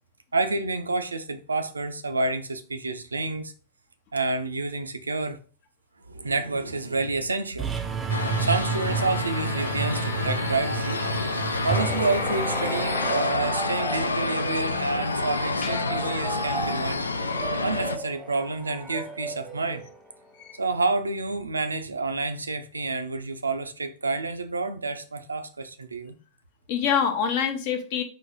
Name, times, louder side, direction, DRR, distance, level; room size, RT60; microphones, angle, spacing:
voice 1, 0.3-3.5 4.1-5.4 6.1-11.0 11.6-17.0 17.6-19.8 20.6-26.2, right 3 dB, 75° right, 0.4 m, -29 dB
sound 1, 7.6-13.0, right 6 dB, 15° right, 0.5 m, -31 dB
sound 2, 8.1-18.0, left 3 dB, 75° left, 0.3 m, -29 dB
voice 2, 8.1-8.5 15.6-15.7 20.4-20.6 26.7-28.0, left 7 dB, 50° left, 0.8 m, -26 dB
sound 3, 11.7-20.4, right 1 dB, ahead, 0.9 m, -35 dB
4.4 x 2.6 x 3.6 m
figure-of-eight pair, 90°, 0 cm